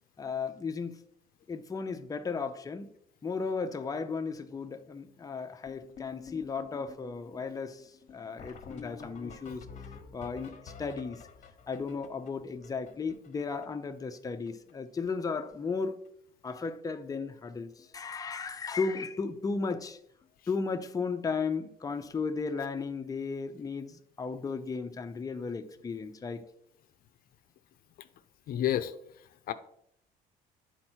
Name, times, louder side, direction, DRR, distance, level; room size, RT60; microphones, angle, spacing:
voice 1, 0.2-1.0 1.5-2.9 3.2-9.7 10.1-11.3 11.7-16.0 16.4-20.0 20.5-26.4, left 4 dB, 20° left, 7 dB, 0.6 m, -35 dB
sound 1, 5.7-13.9 14.2-14.3 14.5-14.7 15.0-15.5 15.8-16.1 16.9-17.0 17.4-17.5 17.8-17.9 20.2-20.3 22.6-22.7, left 6 dB, 45° left, 1.2 m, -49 dB
voice 2, 28.5-29.5, left 12 dB, 60° left, 10 dB, 0.5 m, -32 dB
10.0 x 4.3 x 4.5 m, 0.71 s
cardioid pair, 110°, 17 cm